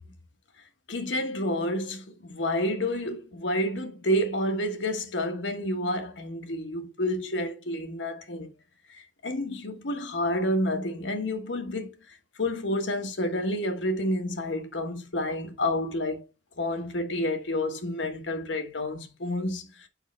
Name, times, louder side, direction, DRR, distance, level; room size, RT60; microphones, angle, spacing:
voice 1, 0.9-8.5 8.9-12.0 12.4-16.3 16.6-19.9, left 1 dB, 80° left, 1.2 m, -29 dB
6.5 x 5.1 x 3.1 m
head